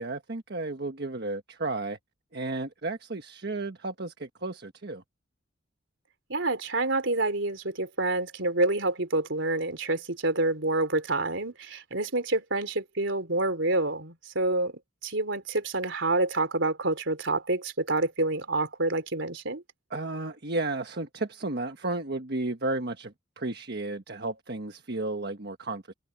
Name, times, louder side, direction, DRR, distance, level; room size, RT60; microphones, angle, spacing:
voice 1, 0.0-2.0 2.3-5.0 19.9-25.9, right 2 dB, 55° right, 1.4 m, -33 dB
voice 2, 6.3-14.7 15.0-19.6, right 2 dB, 70° right, 3.8 m, -27 dB
head